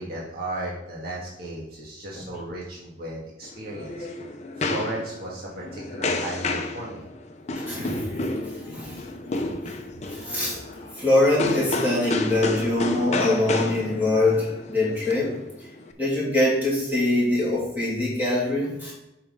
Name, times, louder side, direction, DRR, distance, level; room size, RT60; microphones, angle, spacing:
voice 1, 0.0-3.9 4.6-7.0, right 1 dB, 55° right, -5 dB, 1.7 m, -35 dB
sound 1, 3.4-15.9, left 2 dB, 35° left, 0.6 m, -30 dB
voice 2, 7.6-8.1 8.6-9.0 9.3-9.7 10.1-10.6 11.0-15.4 16.0-18.9, left 2 dB, 10° right, -7 dB, 3.0 m, -24 dB
8.1 x 5.8 x 3.7 m, 0.87 s
head